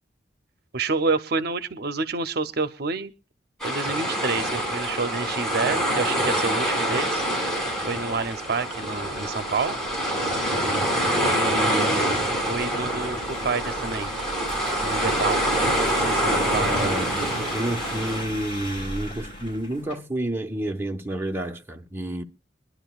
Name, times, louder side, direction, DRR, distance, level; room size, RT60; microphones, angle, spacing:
voice 1, 0.7-3.1 3.6-7.2 7.8-9.8 11.2-12.2 12.5-14.1 14.8-15.4 16.1-17.1, right 4 dB, 60° right, 0.7 m, -28 dB
sound 1, 3.6-18.2, right 1 dB, 5° left, 5.1 m, -25 dB
sound 2, 4.3-20.0, equal, 30° left, 5.6 m, -39 dB
voice 2, 16.7-22.2, right 1 dB, 15° right, 1.0 m, -30 dB
23.5 x 11.0 x 2.4 m
head